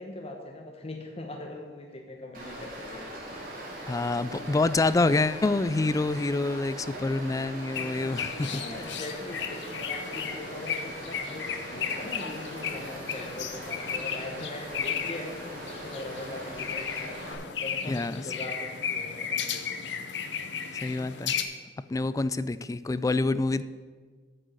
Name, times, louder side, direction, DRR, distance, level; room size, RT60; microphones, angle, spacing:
voice 1, 0.0-3.1 8.5-17.1 17.6-19.9, left 2 dB, 35° left, 1.0 m, -41 dB
Stream, 2.3-17.3, right 1 dB, 55° right, 2.9 m, -41 dB
voice 2, 3.9-8.9 17.9-18.2 20.7-21.4 21.9-23.6, left 3 dB, 20° left, 0.3 m, -27 dB
sound 1, 7.7-21.4, left 7 dB, 85° left, 0.8 m, -35 dB
8.8 x 6.4 x 8.0 m
head